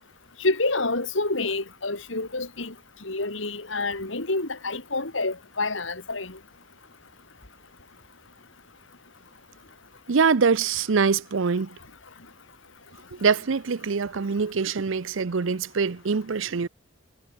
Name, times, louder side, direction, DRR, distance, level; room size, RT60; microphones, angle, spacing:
voice 1, 0.4-2.7 3.0-6.4, left 2 dB, 75° left, 3.3 m, -28 dB
voice 2, 10.1-11.8 13.2-16.7, right 5 dB, 75° right, 0.6 m, -24 dB
head